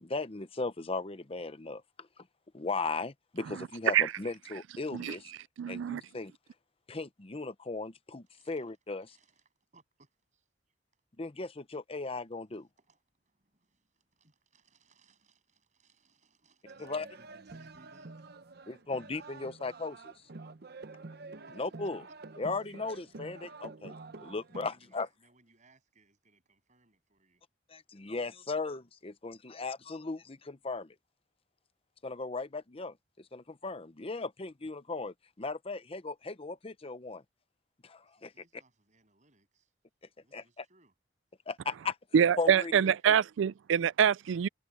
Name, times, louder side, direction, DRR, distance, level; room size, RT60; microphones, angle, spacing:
voice 1, 0.0-2.1 2.5-5.3 5.7-6.3 6.9-9.2 11.2-12.7 16.8-17.0 18.7-20.1 21.6-22.0 22.4-25.1 27.7-31.0 32.0-37.2 37.8-38.3 40.3-40.6 41.5-42.0 42.4-42.7, left 3 dB, 30° left, 0.8 m, -37 dB
voice 2, 5.6-6.0 42.1-44.5, right 8 dB, 75° right, 0.3 m, -25 dB
voice 3, 8.3-8.6 9.1-10.5 12.5-18.3 21.5-21.6 22.6-23.0 24.5-27.4 38.1-39.7 40.2-40.9 42.8-43.1, right 3 dB, 40° right, 7.9 m, -66 dB
Wedding song, 16.7-24.7, right 3 dB, 55° right, 0.8 m, -48 dB
head